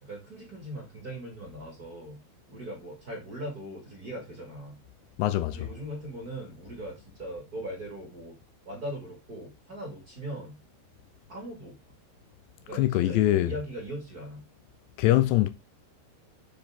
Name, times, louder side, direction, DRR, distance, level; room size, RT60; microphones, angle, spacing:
voice 1, 0.0-2.2 2.5-4.8 5.5-8.4 8.7-10.6 11.3-11.8 12.6-14.4, right 1 dB, 30° right, 1.8 m, -40 dB
voice 2, 5.2-5.7 12.7-13.5 15.0-15.5, left 15 dB, 85° left, 2.7 m, -23 dB
7.6 x 7.0 x 3.7 m
omnidirectional pair, 5.2 m